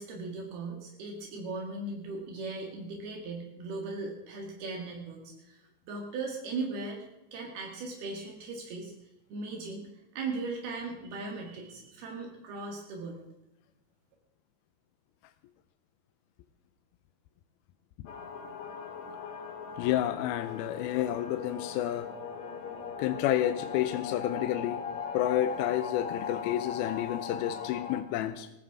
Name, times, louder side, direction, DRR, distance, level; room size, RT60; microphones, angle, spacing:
voice 1, 0.0-5.6 5.9-7.0 7.3-8.9 9.3-9.9 10.2-13.2, right 3 dB, 75° right, 0 dB, 3.8 m, -38 dB
sound 1, 18.1-28.0, left 6 dB, 60° left, 2.2 m, -39 dB
voice 2, 19.8-22.1 23.0-24.8 25.1-28.5, left 12 dB, 80° left, 10 dB, 2.5 m, -30 dB
19.5 x 15.0 x 3.7 m, 0.93 s
omnidirectional pair, 4.5 m